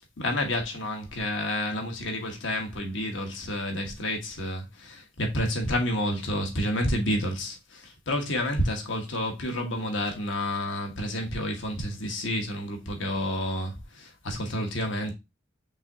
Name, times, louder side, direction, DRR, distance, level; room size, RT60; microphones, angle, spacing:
voice 1, 0.2-15.1, left 1 dB, 80° left, 1.2 m, -30 dB
5.3 x 3.6 x 2.7 m
head